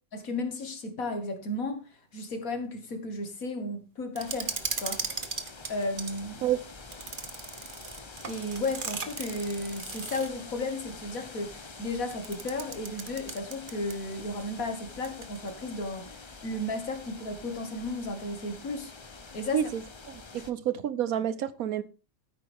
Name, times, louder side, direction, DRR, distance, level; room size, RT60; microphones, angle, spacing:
voice 1, 0.1-1.8 2.1-4.5 4.8-5.0 5.7-6.5 8.3-16.2 16.4-18.9 19.3-19.6, left 2 dB, 75° left, 2.4 m, -34 dB
sound 1, 4.2-20.5, left 4 dB, 25° left, 0.7 m, -46 dB
sound 2, 4.2-6.2 6.9-10.4 12.1-14.1 14.4-14.5 15.0-15.5, right 5 dB, 40° right, 1.2 m, -37 dB
voice 2, 20.1-21.8, right 10 dB, 80° right, 1.4 m, -29 dB
13.5 x 9.5 x 3.6 m
omnidirectional pair, 1.5 m